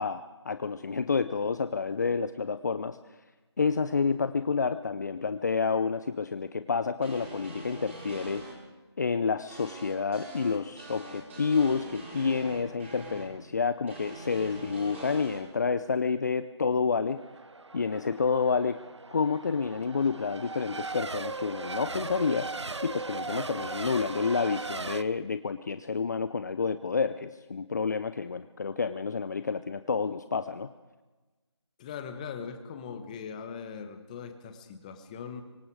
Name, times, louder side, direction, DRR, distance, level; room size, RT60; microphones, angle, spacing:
voice 1, 0.0-3.0 3.6-8.4 9.0-17.2 17.7-18.8 19.1-22.5 22.8-30.7, left 5 dB, 40° left, 11 dB, 0.7 m, -29 dB
sound 1, 7.0-8.5 9.5-13.2 13.9-15.4, right 2 dB, 25° right, 5.8 m, -43 dB
Race car auto racing / Accelerating revving vroom / Mechanisms, 17.2-25.0, right 3 dB, 75° right, 1.1 m, -38 dB
voice 2, 31.8-35.4, left 6 dB, 15° left, 8 dB, 1.4 m, -40 dB
26.5 x 24.5 x 4.9 m, 1.2 s
figure-of-eight pair, 165°, 15 cm